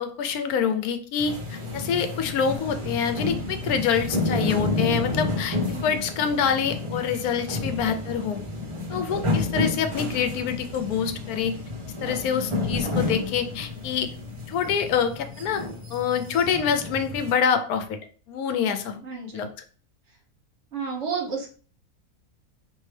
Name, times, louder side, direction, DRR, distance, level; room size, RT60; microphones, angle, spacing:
voice 1, 0.0-5.6 5.8-8.4 8.9-11.5 12.0-14.1 14.5-15.6 15.9-18.0 18.3-19.0 19.3-19.5, left 7 dB, 80° left, 8 dB, 1.1 m, -26 dB
sound 1, 1.2-17.3, left 3 dB, 35° right, 0.5 m, -30 dB
voice 2, 5.7-6.0 19.0-19.4 20.7-21.5, right 5 dB, 55° right, 2 dB, 0.9 m, -31 dB
4.6 x 2.7 x 3.2 m, 0.41 s
omnidirectional pair, 1.6 m